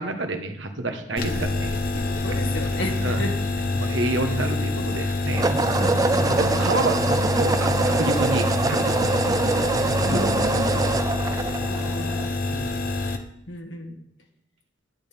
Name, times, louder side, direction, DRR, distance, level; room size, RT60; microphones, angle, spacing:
voice 1, 0.0-2.4 3.0-3.3 3.7-5.5 6.2-9.1 9.4-9.7 10.1-10.5 12.5-12.7, right 2 dB, 70° right, 6 dB, 1.3 m, -29 dB
sound 1, 1.1-1.4 5.3-12.4, right 3 dB, 20° right, 0.3 m, -24 dB
sound 2, 1.2-13.2, left 2 dB, 50° left, 1.0 m, -26 dB
voice 2, 2.2-3.3 5.8-6.6 10.0-10.8 11.7-12.3 13.5-14.0, left 1 dB, 70° left, 3 dB, 1.9 m, -33 dB
10.5 x 10.0 x 3.6 m, 0.75 s
head